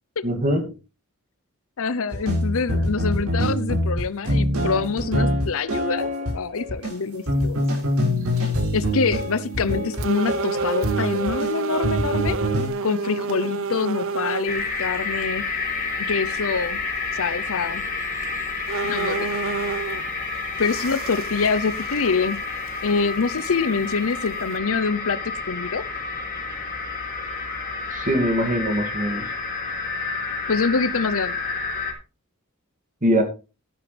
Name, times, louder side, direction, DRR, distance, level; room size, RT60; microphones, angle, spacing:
voice 1, 0.2-0.7 27.9-29.3 33.0-33.2, equal, 35° right, 6 dB, 2.4 m, -22 dB
voice 2, 1.8-7.6 8.4-12.4 12.8-15.4 16.1-16.8 17.1-17.9 18.8-19.2 20.6-22.4 22.8-25.2 25.5-25.8 30.5-31.4, left 5 dB, 65° left, 17 dB, 0.7 m, -25 dB
sound 1, 2.1-12.7, equal, 90° right, 6.5 m, -25 dB
sound 2, 7.6-7.7 8.2-8.6 9.2-9.3 9.9-14.6 15.2-15.3 17.7-17.8 18.2-18.3 18.7-20.1 20.6-22.4 22.7-22.8 23.4-23.5 24.2-24.6, right 4 dB, 65° right, 0.8 m, -29 dB
sound 3, 14.5-31.9, left 4 dB, 40° left, 3.5 m, -30 dB
12.5 x 10.5 x 3.4 m, 0.31 s
head